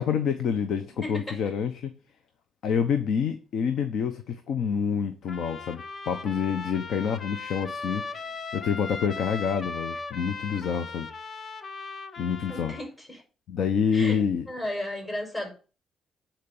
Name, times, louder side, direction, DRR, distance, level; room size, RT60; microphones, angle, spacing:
voice 1, 0.0-1.9 2.6-8.2 8.5-11.1 12.2-12.7 13.5-14.5, left 7 dB, 75° left, 0.9 m, -27 dB
voice 2, 1.0-1.4 12.5-13.2 13.9-14.2 14.5-15.5, left 1 dB, 30° left, 5.3 m, -34 dB
Trumpet, 5.3-12.9, left 4 dB, 45° left, 0.9 m, -38 dB
9.5 x 4.5 x 7.1 m
cardioid pair, 90°, 0 cm